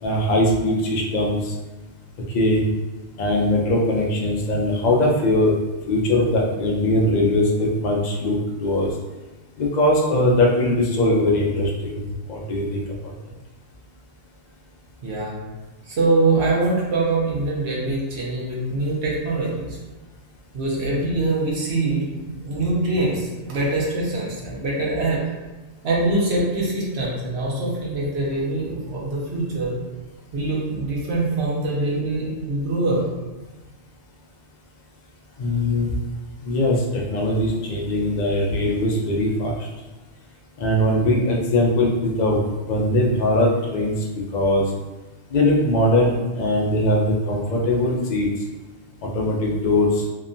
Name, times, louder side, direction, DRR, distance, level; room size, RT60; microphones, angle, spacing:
voice 1, 0.0-1.5 2.3-2.6 3.2-5.5 5.9-8.9 9.6-13.1 35.4-35.9 36.4-39.6 40.6-42.4 42.7-43.9 44.3-44.7 45.3-48.3 49.0-50.0, left 1 dB, 70° left, -2 dB, 0.4 m, -21 dB
voice 2, 15.0-15.4 15.8-19.8 20.5-25.2 25.8-29.8 30.3-33.0, right 2 dB, 65° right, -4 dB, 0.9 m, -23 dB
2.9 x 2.2 x 2.5 m, 1.2 s
omnidirectional pair, 1.3 m